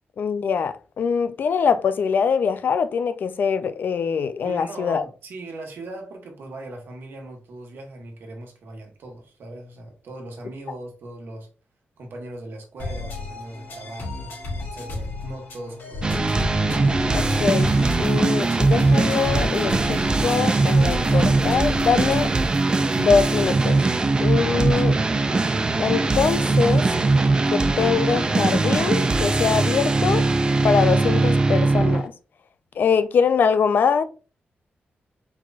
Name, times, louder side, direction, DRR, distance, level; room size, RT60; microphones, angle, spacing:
voice 1, 0.2-5.0 17.1-17.7 18.0-22.3 23.0-23.8 24.2-24.9 25.8-26.8 27.5-30.2 30.6-32.1 32.8-34.0, left 6 dB, 60° left, 0.4 m, -23 dB
voice 2, 4.4-11.5 12.0-16.4 24.4-25.2, right 2 dB, 80° right, 1.3 m, -39 dB
sound 1, 12.8-22.4, left 3 dB, 85° left, 2.3 m, -33 dB
sound 2, 16.0-32.0, right 3 dB, 25° right, 0.4 m, -20 dB
sound 3, 24.2-25.0 25.4-31.5, right 3 dB, 60° right, 1.0 m, -43 dB
4.6 x 4.0 x 2.3 m
wide cardioid pair, 170°, 4 cm